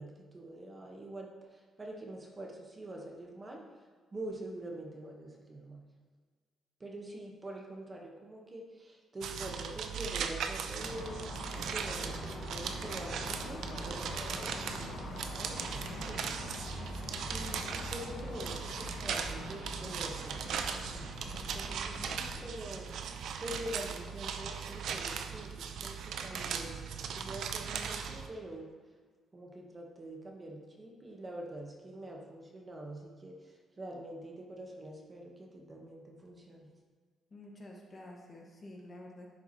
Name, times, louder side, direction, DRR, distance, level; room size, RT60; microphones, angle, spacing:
voice 1, 0.0-3.6 4.1-5.8 6.8-15.7 16.0-16.5 17.2-20.4 20.7-22.9 23.4-28.7 29.3-36.7, right 1 dB, 30° right, 0 dB, 1.1 m, -45 dB
sound 1, 9.2-28.3, right 7 dB, 75° right, 0.5 m, -39 dB
sound 2, 10.8-22.5, left 2 dB, 70° left, 1.3 m, -44 dB
voice 2, 37.3-39.3, left 1 dB, 35° left, -1 dB, 1.4 m, -49 dB
10.5 x 4.5 x 2.9 m, 1.5 s
cardioid pair, 90°, 0 cm